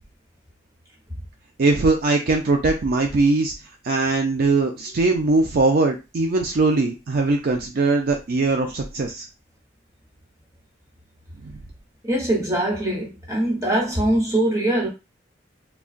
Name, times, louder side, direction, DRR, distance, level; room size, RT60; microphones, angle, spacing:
voice 1, 1.6-3.5 3.8-9.3 11.4-11.5, right 3 dB, 55° right, 0.4 m, -20 dB
voice 2, 12.0-14.9, right 1 dB, 20° right, 1.2 m, -22 dB
3.7 x 2.3 x 2.4 m
head